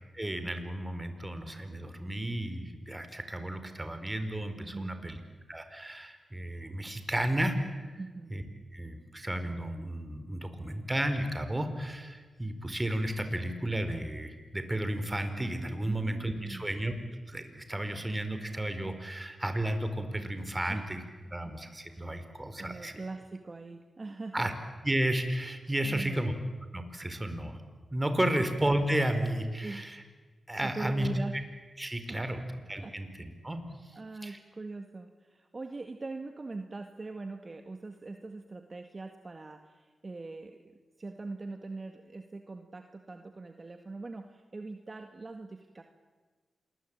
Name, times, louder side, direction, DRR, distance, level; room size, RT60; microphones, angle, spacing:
voice 1, 0.1-5.2 5.5-7.9 8.3-8.4 8.7-16.9 17.3-21.0 21.3-22.9 24.3-24.5 24.8-26.3 26.7-27.6 27.9-30.0 30.5-31.1 31.8-32.4 32.7-33.6 34.2-34.4, right 1 dB, 20° right, 8 dB, 4.5 m, -33 dB
voice 2, 4.7-5.2 8.0-8.3 15.9-16.7 20.7-20.9 21.4-21.5 21.9-22.0 22.6-24.5 25.8-26.3 29.6-29.9 30.6-31.3 32.1-32.4 32.7-33.0 33.9-45.8, right 3 dB, 40° right, 6 dB, 2.0 m, -42 dB
27.0 x 21.5 x 9.0 m, 1.3 s
cardioid pair, 50°, 0 cm